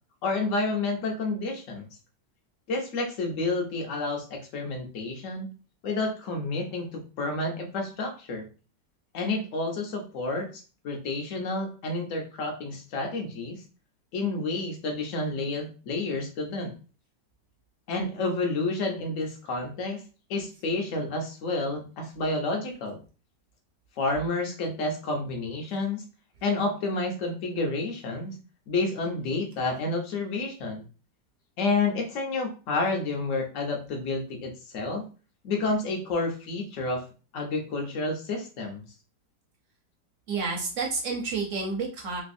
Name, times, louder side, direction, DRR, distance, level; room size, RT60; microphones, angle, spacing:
voice 1, 0.2-1.9 2.7-5.5 5.8-8.4 9.1-13.6 14.1-16.7 17.9-20.0 20.3-23.0 24.0-26.0 26.4-28.3 28.7-30.8 31.6-35.0 35.4-37.0 37.3-38.8, left 3 dB, 55° left, 2 dB, 1.0 m, -30 dB
voice 2, 40.3-42.2, right 4 dB, 55° right, 0 dB, 0.9 m, -30 dB
3.3 x 2.9 x 2.6 m, 0.35 s
omnidirectional pair, 2.0 m